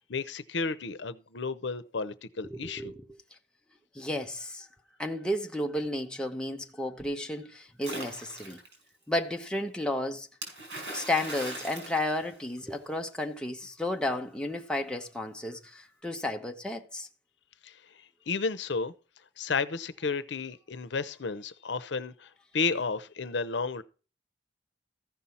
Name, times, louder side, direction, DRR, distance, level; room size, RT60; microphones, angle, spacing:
voice 1, 0.0-2.9 17.6-17.7 18.3-18.9 19.4-22.3 22.5-23.8, left 4 dB, 75° left, 0.7 m, -32 dB
voice 2, 2.5-3.1 3.9-4.7 5.0-8.6 9.1-10.3 10.9-17.1, left 1 dB, 5° left, 0.9 m, -32 dB
Splash splatter, 7.8-8.8 10.4-12.9, right 1 dB, 80° right, 4.8 m, -40 dB
14.5 x 5.6 x 4.3 m
head